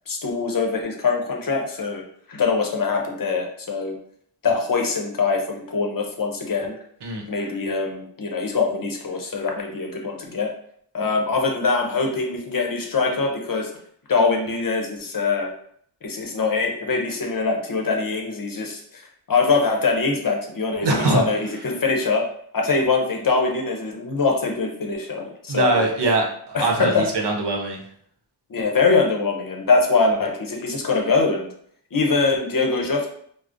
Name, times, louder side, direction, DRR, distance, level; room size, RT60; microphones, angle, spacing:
voice 1, 0.1-2.0 2.3-4.0 4.4-6.8 7.3-10.5 10.9-13.7 14.1-15.5 16.0-19.0 19.3-22.2 22.5-25.9 26.5-27.0 28.5-31.5 31.9-33.1, left 4 dB, 50° left, 1 dB, 0.7 m, -23 dB
voice 2, 20.8-21.2 25.5-27.8, right 2 dB, 70° right, 1 dB, 0.8 m, -22 dB
4.7 x 2.0 x 2.5 m, 0.64 s
wide cardioid pair, 110°, 43 cm